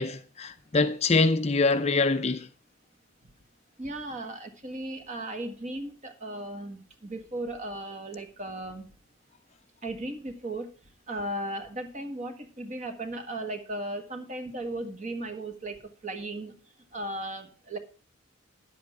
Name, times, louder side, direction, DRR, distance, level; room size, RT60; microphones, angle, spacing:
voice 1, 0.0-2.5, left 3 dB, 30° left, 0.5 m, -24 dB
voice 2, 3.8-8.9 9.8-10.7 11.1-16.5 16.9-17.8, right 1 dB, 35° right, 1.5 m, -36 dB
10.5 x 7.9 x 4.7 m
head